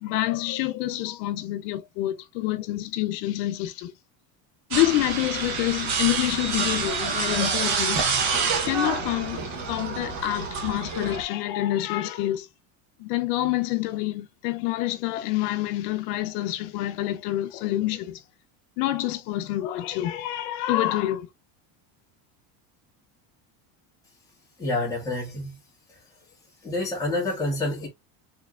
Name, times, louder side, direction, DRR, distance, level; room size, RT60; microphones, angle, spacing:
voice 1, 0.0-3.9 4.7-8.0 8.6-9.4 9.7-12.5 13.0-18.2 18.8-21.3, left 15 dB, 85° left, 0.6 m, -27 dB
sound 1, 4.7-11.2, right 5 dB, 35° right, 0.9 m, -27 dB
voice 2, 24.6-25.6 26.6-27.9, left 2 dB, 5° left, 1.3 m, -28 dB
4.5 x 2.9 x 2.3 m
cardioid pair, 175°, 45 cm